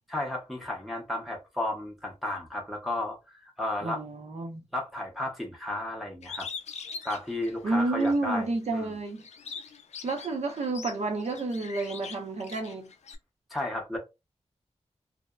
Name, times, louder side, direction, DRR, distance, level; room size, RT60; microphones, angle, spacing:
voice 1, 0.1-4.0 4.7-6.5 7.0-8.9 13.5-14.0, left 1 dB, ahead, 0.6 m, -33 dB
voice 2, 3.8-4.6 7.6-9.2 10.0-12.9, right 3 dB, 70° right, 0.7 m, -30 dB
Bird, 6.2-8.2 8.6-13.1, left 5 dB, 75° left, 0.4 m, -42 dB
2.7 x 2.0 x 2.2 m
wide cardioid pair, 120°, 12 cm